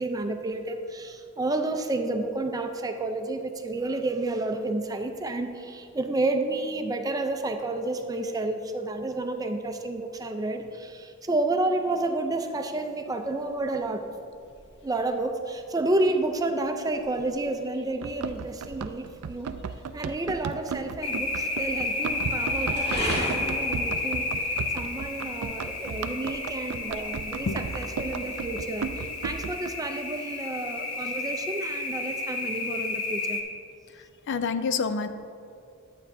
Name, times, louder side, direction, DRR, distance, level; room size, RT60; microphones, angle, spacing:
voice 1, 0.0-14.1 14.8-19.5 19.9-24.3 24.7-27.5 27.7-33.4, right 2 dB, 15° right, 6 dB, 0.5 m, -30 dB
sound 1, 13.1-28.6, equal, 25° left, 2.2 m, -41 dB
Run, 18.0-29.7, right 6 dB, 80° right, 0.4 m, -35 dB
sound 2, 21.0-33.4, left 3 dB, 75° left, 1.0 m, -32 dB
voice 2, 33.9-35.1, left 5 dB, 55° left, 10 dB, 0.4 m, -28 dB
11.0 x 8.5 x 2.7 m, 2.4 s
head